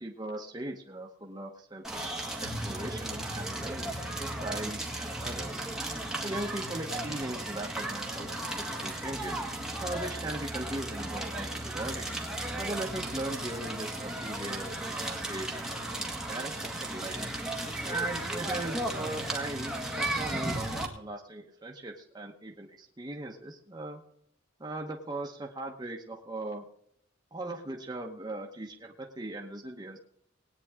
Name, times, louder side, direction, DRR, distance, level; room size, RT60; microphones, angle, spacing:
voice 1, 0.0-2.1 2.4-5.6 6.2-9.4 9.8-12.1 12.6-17.3 17.8-24.0 24.6-26.6 27.3-30.0, right 2 dB, 20° right, 0 dB, 1.1 m, -39 dB
Crackle, 1.8-20.9, right 1 dB, 5° right, 1.8 m, -35 dB
20.0 x 9.4 x 3.7 m, 0.69 s
head